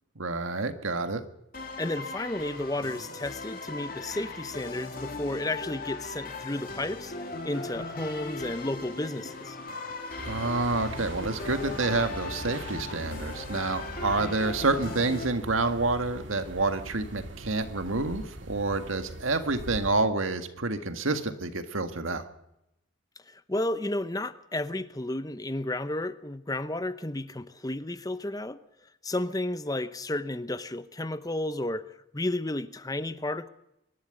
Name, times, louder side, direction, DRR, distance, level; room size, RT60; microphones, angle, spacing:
voice 1, 0.2-1.2 10.3-22.2, right 3 dB, 85° right, 8 dB, 1.9 m, -28 dB
sound 1, 1.5-15.3, left 3 dB, 45° left, 3.1 m, -39 dB
voice 2, 1.8-9.6 23.3-28.6 29.0-33.5, left 1 dB, 20° left, 13 dB, 0.8 m, -32 dB
sound 2, 10.2-19.9, right 1 dB, 70° right, 2.2 m, -42 dB
24.5 x 11.5 x 10.0 m, 0.86 s
head